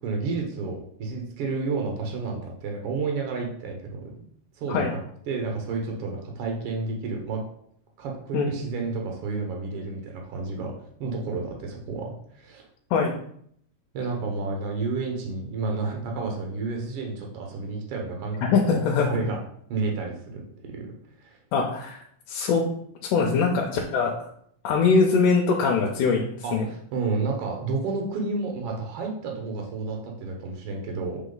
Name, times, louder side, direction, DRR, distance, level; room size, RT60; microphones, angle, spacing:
voice 1, 0.0-4.1 4.6-5.0 5.3-7.4 8.0-10.7 11.0-12.7 13.9-19.4 19.7-20.9 21.2-21.4 26.4-31.2, right 3 dB, 70° right, 1 dB, 1.4 m, -31 dB
voice 2, 18.4-19.1 21.5-22.0 22.3-22.6 23.1-24.3 24.6-26.7, left 5 dB, 80° left, 0 dB, 2.1 m, -22 dB
7.1 x 3.8 x 3.8 m, 0.67 s
omnidirectional pair, 3.7 m